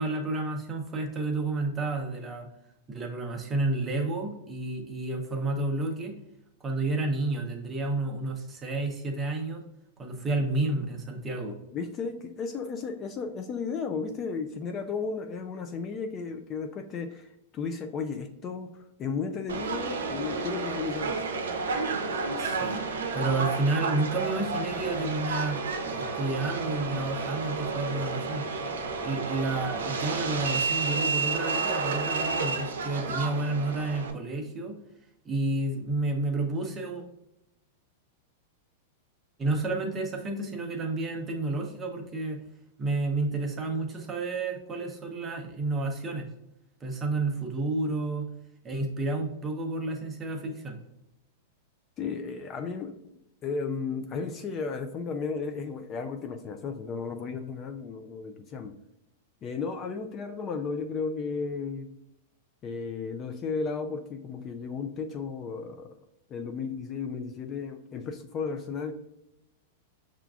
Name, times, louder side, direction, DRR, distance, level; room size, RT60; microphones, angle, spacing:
voice 1, 0.0-2.5 2.9-6.1 6.6-9.6 10.0-11.6 22.4-22.8 23.1-28.5 29.0-34.8 35.2-37.0 39.4-42.4 42.8-46.3 46.8-48.3 48.6-50.8, right 2 dB, 20° right, 2 dB, 0.7 m, -30 dB
voice 2, 11.7-21.2 52.0-53.0 53.4-58.7 59.4-61.9 62.6-65.9 66.3-68.9, left 5 dB, 30° left, 6 dB, 0.3 m, -34 dB
Subway metro underground, 19.5-34.1, right 4 dB, 85° right, 0.5 m, -31 dB
5.8 x 2.4 x 2.3 m, 0.81 s
hypercardioid pair, 130°, 0 cm